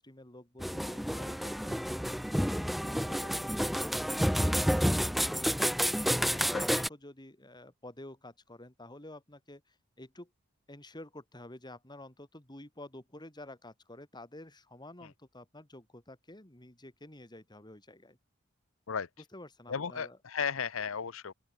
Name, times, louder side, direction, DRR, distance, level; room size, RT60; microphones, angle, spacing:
voice 1, 0.0-3.4 3.9-5.5 6.0-10.3 10.7-18.2 19.3-20.2, left 1 dB, 20° left, 3.6 m, -50 dB
sound 1, 0.6-6.9, equal, ahead, 0.5 m, -30 dB
voice 2, 19.7-21.3, left 6 dB, 80° left, 0.8 m, -34 dB
open air
head